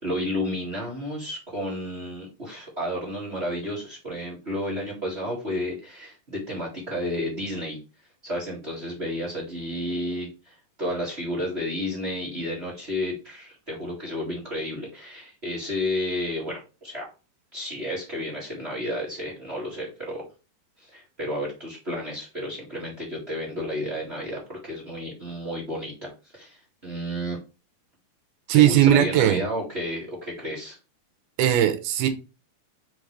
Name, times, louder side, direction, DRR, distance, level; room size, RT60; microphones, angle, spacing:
voice 1, 0.0-7.8 8.2-17.1 17.5-20.2 20.8-27.4 28.5-30.8, left 1 dB, 30° right, -3 dB, 1.2 m, -32 dB
voice 2, 28.5-29.4 31.4-32.1, right 11 dB, 75° right, 7 dB, 2.6 m, -18 dB
5.8 x 5.2 x 3.2 m, 0.30 s
omnidirectional pair, 4.6 m